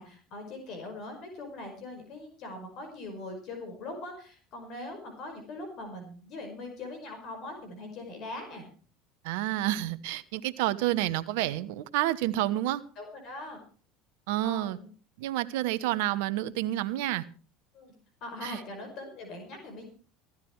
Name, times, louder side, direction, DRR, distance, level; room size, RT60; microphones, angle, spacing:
voice 1, 0.0-8.7 13.0-13.6 14.4-14.9 17.7-17.9 18.2-19.8, left 2 dB, 55° left, 5.4 m, -41 dB
voice 2, 9.2-12.8 14.3-14.8 15.2-17.2 18.4-18.6, right 14 dB, 75° right, 1.0 m, -29 dB
16.0 x 12.5 x 4.7 m
hypercardioid pair, 85°, 0 cm